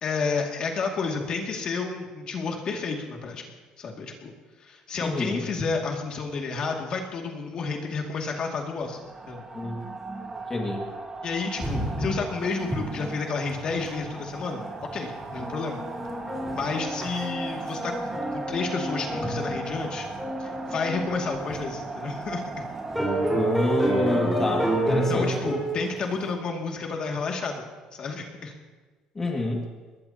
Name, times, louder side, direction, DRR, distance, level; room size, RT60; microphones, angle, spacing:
voice 1, 0.0-3.4 3.8-4.3 4.6-9.0 9.3-9.4 11.2-14.6 14.9-15.8 16.5-20.1 20.4-22.7 25.1-27.6 27.9-28.5, left 4 dB, 40° left, 1 dB, 2.2 m, -31 dB
voice 2, 5.0-5.4 9.5-9.8 10.5-10.8 23.3-25.3 29.2-29.6, left 2 dB, 20° left, 0 dB, 2.1 m, -27 dB
sound 1, 8.8-26.5, right 3 dB, 20° right, 1.6 m, -38 dB
sound 2, 11.6-12.3 12.6-12.8 13.1-13.2 13.5-13.8 14.8-14.9 15.2-21.6 22.2-22.3 22.9-25.8, right 1 dB, ahead, 4.5 m, -29 dB
23.0 x 20.0 x 2.9 m, 1.3 s
cardioid pair, 145°, 2 cm